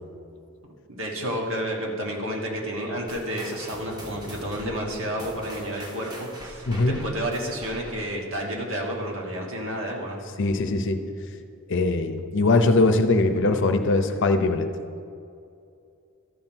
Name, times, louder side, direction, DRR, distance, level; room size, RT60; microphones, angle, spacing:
voice 1, 0.9-10.2, equal, 65° right, -1 dB, 1.6 m, -30 dB
sound 1, 3.1-8.2, equal, 20° right, 1.1 m, -42 dB
voice 2, 6.7-7.0 10.4-11.0 11.7-14.7, left 3 dB, 60° left, 7 dB, 0.7 m, -21 dB
13.5 x 5.9 x 4.5 m, 2.5 s
head